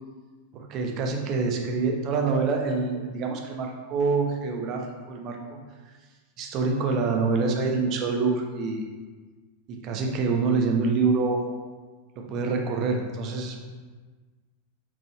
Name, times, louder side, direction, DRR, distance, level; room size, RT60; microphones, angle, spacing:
voice 1, 0.5-4.8 5.1-5.6 6.4-8.8 9.7-11.4 12.2-13.6, right 4 dB, 35° right, 2 dB, 1.1 m, -26 dB
6.0 x 4.5 x 4.2 m, 1.4 s
figure-of-eight pair, 90°, 0 cm